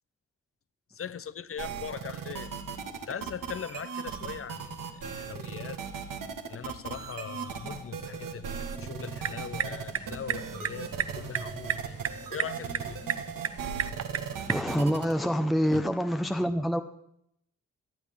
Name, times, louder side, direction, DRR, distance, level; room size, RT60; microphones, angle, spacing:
voice 1, 0.9-2.5 3.1-5.8 6.5-12.0 12.3-13.0 15.7-15.8, left 7 dB, 45° left, 0.7 m, -40 dB
sound 1, 1.6-15.1, right 6 dB, 85° right, 1.6 m, -37 dB
sound 2, 6.5-13.6, left 2 dB, 25° left, 2.1 m, -54 dB
sound 3, 9.0-14.7, right 7 dB, 50° right, 0.7 m, -35 dB
voice 2, 14.4-16.8, equal, ahead, 0.8 m, -26 dB
18.0 x 12.0 x 3.7 m
cardioid pair, 65°, 32 cm